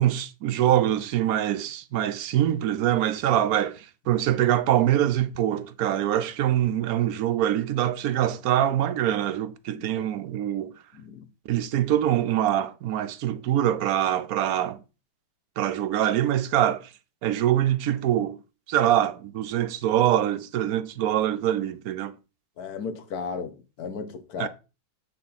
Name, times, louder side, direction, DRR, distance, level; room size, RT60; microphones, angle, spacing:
voice 1, 0.0-10.7 11.5-14.8 15.6-16.9 17.2-18.4 18.7-22.1 24.4-24.5, right 11 dB, 70° right, 1.1 m, -24 dB
voice 2, 10.9-11.3 22.6-24.5, left 5 dB, 75° left, 1.5 m, -35 dB
8.7 x 4.3 x 4.1 m
omnidirectional pair, 1.7 m